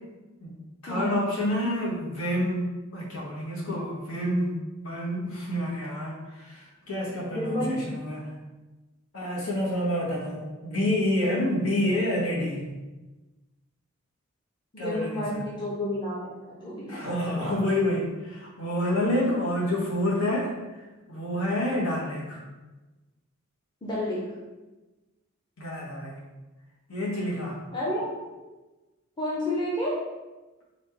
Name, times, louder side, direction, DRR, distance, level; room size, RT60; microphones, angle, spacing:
voice 1, 0.8-8.4 9.1-12.7 14.8-15.5 16.9-20.5 21.1-22.4 25.6-26.2 26.9-27.6, left 1 dB, 85° left, -4 dB, 1.4 m, -28 dB
voice 2, 7.3-7.9 14.7-17.9 19.2-19.4 23.8-24.3 27.7-28.4 29.2-30.0, left 1 dB, 20° left, -6 dB, 0.7 m, -31 dB
4.2 x 2.6 x 4.4 m, 1.1 s
head